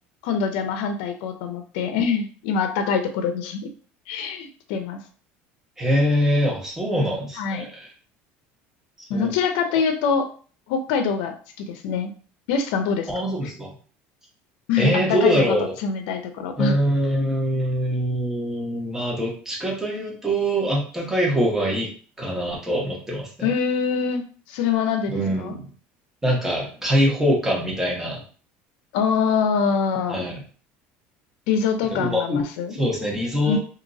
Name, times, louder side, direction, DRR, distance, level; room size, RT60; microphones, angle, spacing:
voice 1, 0.2-3.7 4.1-5.0 7.4-7.7 9.1-10.3 10.7-12.1 12.5-13.3 14.7-15.3 15.8-16.8 23.4-24.2 24.5-25.6 28.9-30.3 31.5-32.8 33.4-33.6, left 6 dB, 80° left, 7 dB, 0.5 m, -24 dB
voice 2, 5.8-7.7 9.1-9.3 13.1-13.7 14.8-15.7 16.6-21.9 22.2-23.5 25.1-25.7 26.2-28.2 30.1-30.4 31.8-32.4 32.7-33.6, equal, 10° right, -3 dB, 1.1 m, -23 dB
2.9 x 2.6 x 2.6 m, 0.41 s
supercardioid pair, 125°, 5 cm